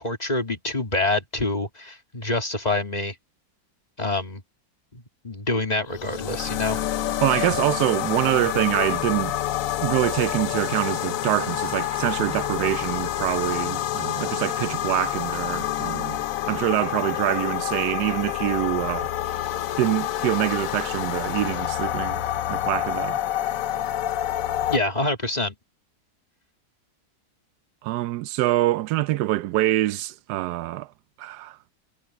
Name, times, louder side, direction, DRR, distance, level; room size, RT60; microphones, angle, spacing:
voice 1, 0.0-3.1 4.0-4.4 4.9-6.8 7.3-7.5 24.7-25.5, left 2 dB, 25° left, 2.2 m, -26 dB
sound 1, 5.9-24.8, left 12 dB, 65° left, 1.0 m, -28 dB
voice 2, 7.2-9.3 9.8-16.2 16.5-19.1 19.8-22.2 22.5-23.2 27.8-30.9 31.2-31.6, right 15 dB, 90° right, 1.1 m, -25 dB
omnidirectional pair, 1.7 m